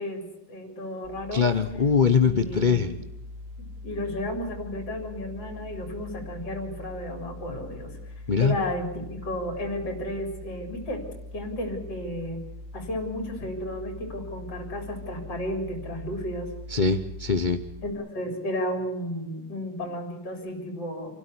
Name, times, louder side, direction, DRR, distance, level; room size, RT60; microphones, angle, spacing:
voice 1, 0.0-1.4 2.2-3.0 3.6-8.0 8.4-11.0 11.3-12.4 12.7-16.5 17.8-21.2, left 1 dB, 50° left, 4 dB, 4.3 m, -33 dB
sound 1, 1.0-17.9, left 2 dB, 50° right, 2.1 m, -42 dB
voice 2, 1.3-2.9 8.3-8.6 16.7-17.6, left 5 dB, 80° left, 10 dB, 0.4 m, -22 dB
28.0 x 12.5 x 9.8 m, 0.88 s
omnidirectional pair, 2.4 m